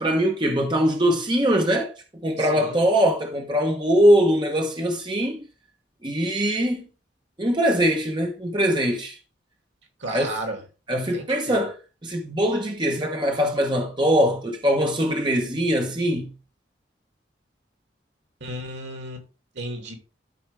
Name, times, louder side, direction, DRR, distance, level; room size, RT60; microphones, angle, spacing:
voice 1, 0.0-1.9 2.2-5.4 6.0-6.8 7.4-9.2 10.1-10.3 10.9-11.7 12.0-16.3, equal, 25° right, 1.2 m, -22 dB
voice 2, 2.4-2.8 10.0-10.6 11.1-11.6 18.4-19.2 19.5-19.9, right 1 dB, 80° right, 2.5 m, -34 dB
12.5 x 4.9 x 3.4 m
head